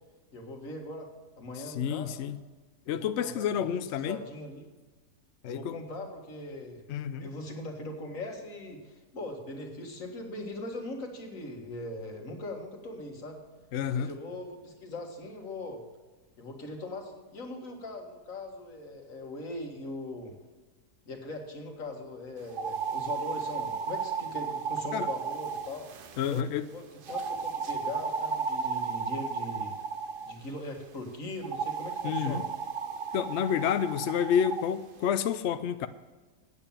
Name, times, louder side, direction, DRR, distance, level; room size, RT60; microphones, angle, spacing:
voice 1, 0.3-1.1 1.4-2.1 2.9-4.6 5.4-6.8 7.2-13.4 14.0-15.8 16.4-20.3 21.1-25.8 26.3-29.7 30.2-32.5, left 2 dB, 55° left, 3 dB, 2.0 m, -40 dB
voice 2, 1.6-2.4 2.9-4.2 5.4-5.7 6.9-7.3 13.7-14.1 24.9-25.1 26.2-26.6 32.0-32.4 33.1-35.9, left 8 dB, 70° left, 11 dB, 0.6 m, -29 dB
sound 1, 22.5-26.4 27.1-30.4 31.4-34.7, right 5 dB, 55° right, 0.6 m, -34 dB
8.8 x 8.3 x 7.1 m, 1.3 s
omnidirectional pair, 1.7 m